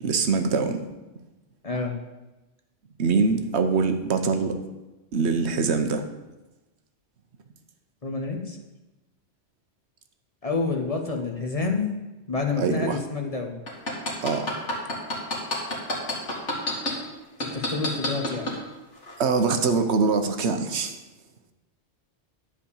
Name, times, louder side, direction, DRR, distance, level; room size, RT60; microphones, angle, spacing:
voice 1, 0.0-0.8 3.0-4.5 5.1-6.0 12.6-13.0 14.2-14.5 19.2-21.0, right 4 dB, 70° right, 7 dB, 1.1 m, -23 dB
voice 2, 1.6-2.0 8.0-8.6 10.4-11.9 12.3-13.6 17.4-18.5, left 4 dB, 35° left, 2 dB, 1.0 m, -28 dB
sound 1, 13.7-16.9 17.4-18.6 19.0-19.1, left 2 dB, 85° left, 2.4 m, -27 dB
10.5 x 4.9 x 7.0 m, 1.1 s
omnidirectional pair, 1.2 m